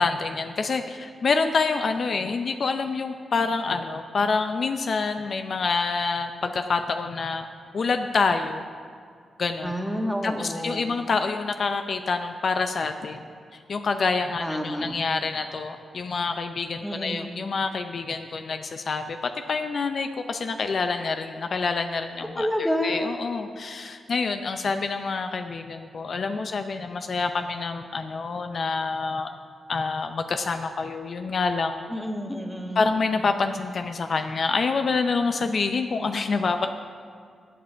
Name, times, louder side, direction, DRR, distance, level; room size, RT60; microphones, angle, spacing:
voice 1, 0.0-7.5 7.7-8.6 9.4-9.7 10.2-13.2 13.7-19.2 19.5-29.3 29.7-31.8 32.8-36.7, left 4 dB, 60° left, 7 dB, 0.5 m, -27 dB
voice 2, 9.6-10.9 14.4-14.9 16.8-17.3 22.4-23.1 31.9-32.9, equal, ahead, 1 dB, 1.7 m, -29 dB
14.5 x 7.7 x 4.5 m, 2.2 s
cardioid pair, 60°, 0 cm